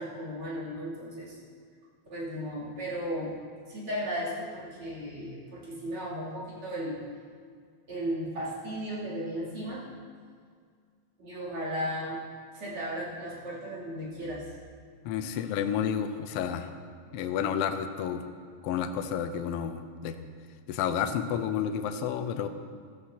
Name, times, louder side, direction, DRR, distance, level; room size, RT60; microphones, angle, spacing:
voice 1, 0.0-1.4 2.1-3.4 3.7-7.0 7.9-9.8 11.2-12.2 12.5-14.5, equal, 45° right, -6 dB, 3.7 m, -35 dB
voice 2, 15.0-16.7 17.1-18.3 18.6-20.2 20.7-22.5, left 8 dB, 85° left, 7 dB, 1.3 m, -30 dB
15.5 x 13.0 x 2.9 m, 2.1 s
omnidirectional pair, 3.5 m